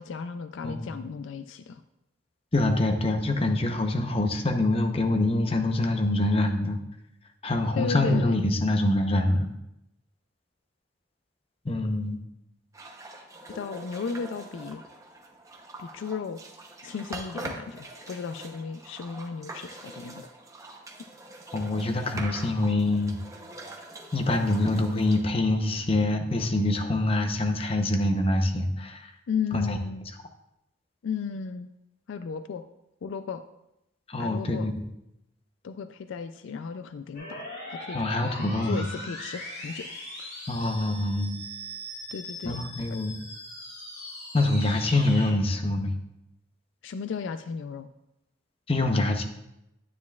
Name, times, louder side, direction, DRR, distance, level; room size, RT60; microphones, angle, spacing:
voice 1, 0.0-1.8 7.8-8.4 13.5-14.8 15.8-16.4 16.8-20.3 21.9-22.1 29.3-30.1 31.0-31.7 32.1-32.6 33.0-33.4 34.2-34.7 35.6-38.0 38.4-39.9 40.2-40.3 42.1-42.6 46.8-47.9, left 6 dB, 70° left, 10 dB, 0.3 m, -35 dB
voice 2, 0.6-1.0 2.5-6.8 7.4-9.5 11.6-12.2 21.5-23.2 24.1-29.1 29.5-29.8 34.1-34.8 37.9-38.8 40.5-41.4 42.4-43.2 44.3-45.9 48.7-49.2, left 2 dB, 30° left, 5 dB, 0.7 m, -25 dB
sound 1, 12.7-26.3, right 2 dB, 15° right, 0.7 m, -43 dB
sound 2, 37.1-45.3, left 1 dB, 55° left, 2.8 m, -40 dB
9.4 x 9.4 x 2.3 m, 0.86 s
head